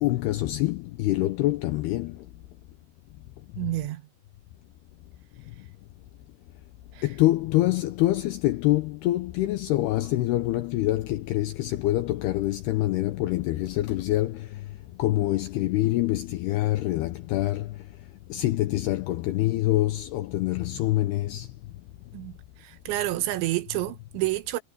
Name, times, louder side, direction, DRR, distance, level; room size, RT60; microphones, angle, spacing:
voice 1, 0.0-2.1 7.0-14.4 15.0-17.7 18.3-21.5, left 16 dB, 80° left, 2.4 m, -25 dB
voice 2, 3.6-4.0 7.0-7.1 22.1-22.3 22.6-24.6, right 17 dB, 80° right, 3.3 m, -29 dB
omnidirectional pair, 5.4 m